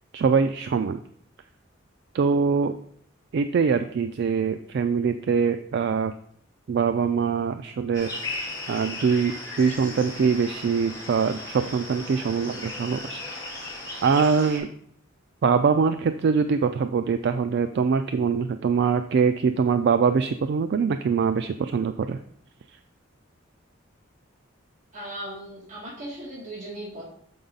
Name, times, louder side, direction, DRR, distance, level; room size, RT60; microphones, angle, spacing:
voice 1, 0.1-1.0 2.1-2.7 3.3-6.1 6.7-8.4 8.7-13.6 14.0-14.7 15.4-22.2, right 5 dB, 55° right, 9 dB, 0.3 m, -23 dB
sound 1, 7.9-14.6, left 2 dB, 20° left, 2.4 m, -36 dB
voice 2, 24.9-27.0, right 1 dB, 35° right, -7 dB, 1.7 m, -37 dB
7.0 x 5.4 x 3.8 m, 0.65 s
head